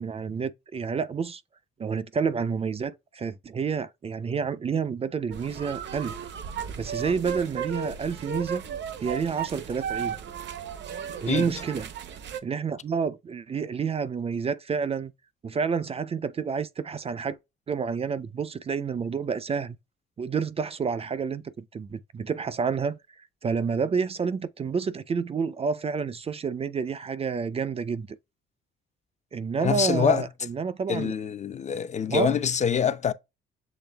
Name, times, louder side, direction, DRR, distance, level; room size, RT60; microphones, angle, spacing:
voice 1, 0.0-1.4 1.8-6.1 6.8-8.6 9.0-10.2 11.2-11.9 12.4-15.1 15.4-17.4 17.7-19.8 20.2-23.0 23.4-28.2 29.3-31.1 32.1-32.4, right 5 dB, 30° right, 0.4 m, -29 dB
sound 1, 5.3-12.4, right 7 dB, 65° right, 0.7 m, -35 dB
voice 2, 29.6-30.3 30.9-33.1, left 8 dB, 35° left, 0.4 m, -25 dB
7.0 x 3.3 x 2.2 m
cardioid pair, 90°, 20 cm